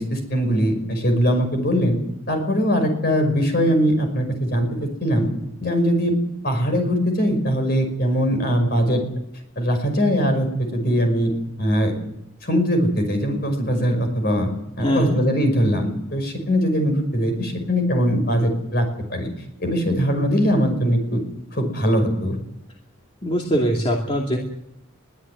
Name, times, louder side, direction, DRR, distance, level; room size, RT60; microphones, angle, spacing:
voice 1, 0.0-2.0 2.3-5.3 5.6-6.1 6.4-9.0 9.6-11.3 11.6-11.9 12.4-14.5 14.8-19.3 19.6-21.2 21.5-22.4, equal, 50° left, 5 dB, 5.6 m, -21 dB
voice 2, 14.8-15.2 23.2-24.4, equal, 25° left, -1 dB, 2.6 m, -22 dB
22.5 x 14.5 x 9.5 m, 0.83 s
head